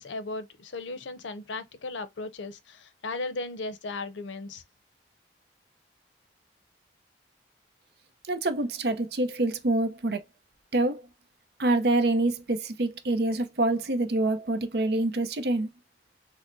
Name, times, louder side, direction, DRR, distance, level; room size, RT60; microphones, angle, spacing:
voice 1, 0.0-4.6, left 3 dB, 90° left, 0.6 m, -36 dB
voice 2, 8.3-10.2 10.7-11.0 11.6-15.7, right 2 dB, 60° right, 0.6 m, -26 dB
6.2 x 2.1 x 2.6 m
head